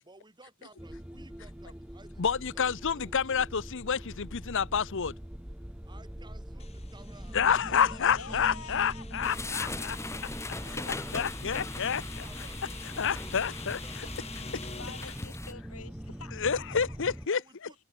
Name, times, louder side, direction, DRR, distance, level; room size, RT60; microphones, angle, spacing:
voice 1, 0.0-3.2 5.9-8.4 9.2-11.2 11.7-14.2 17.2-17.8, right 2 dB, 20° right, 4.9 m, -56 dB
sound 1, 0.8-17.3, equal, 5° right, 0.6 m, -42 dB
voice 2, 2.2-5.1 7.3-9.9 11.1-12.0 13.0-13.8 16.3-17.4, left 7 dB, 60° left, 0.8 m, -28 dB
sound 2, 6.6-15.4, left 5 dB, 30° left, 2.4 m, -48 dB
voice 3, 8.2-9.3 14.8-16.4, left 4 dB, 75° left, 7.3 m, -46 dB
sound 3, 9.2-15.5, left 3 dB, 15° left, 1.9 m, -40 dB
head